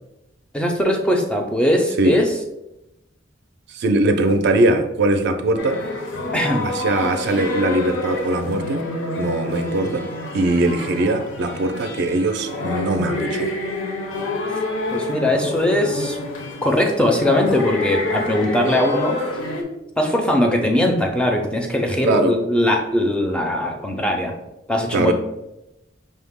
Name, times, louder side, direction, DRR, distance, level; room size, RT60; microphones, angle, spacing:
voice 1, 0.5-2.3 6.3-6.7 14.9-16.2 16.6-19.2 20.0-24.3 24.7-25.1, left 1 dB, 5° left, 2 dB, 0.4 m, -20 dB
voice 2, 3.7-5.8 6.6-8.8 9.2-13.5 22.0-22.3 24.9-25.1, right 2 dB, 60° right, 7 dB, 0.4 m, -20 dB
sound 1, 5.6-19.6, left 2 dB, 80° left, 0.6 m, -27 dB
5.3 x 2.0 x 3.5 m, 0.92 s
head